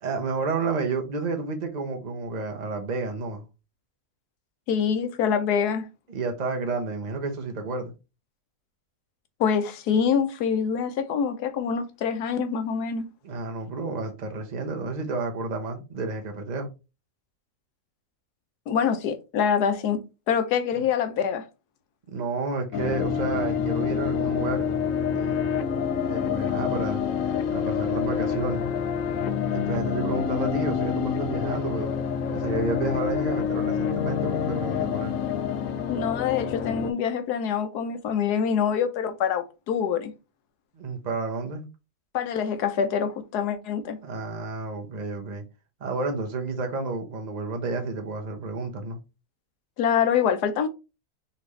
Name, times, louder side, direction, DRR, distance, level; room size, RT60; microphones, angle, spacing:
voice 1, 0.0-3.4 6.1-7.9 13.2-16.7 22.1-24.7 25.1-25.3 26.1-27.0 27.5-28.7 29.5-31.9 32.3-35.2 40.7-41.7 44.0-45.4 45.8-49.0, right 3 dB, 35° right, 0.8 m, -30 dB
voice 2, 4.7-5.9 9.4-13.1 18.7-20.0 20.3-21.4 35.9-40.1 42.1-44.0 49.8-50.7, left 7 dB, 85° left, 1.3 m, -25 dB
sound 1, 22.7-36.9, left 7 dB, 70° left, 0.9 m, -27 dB
4.1 x 3.4 x 3.1 m
omnidirectional pair, 1.6 m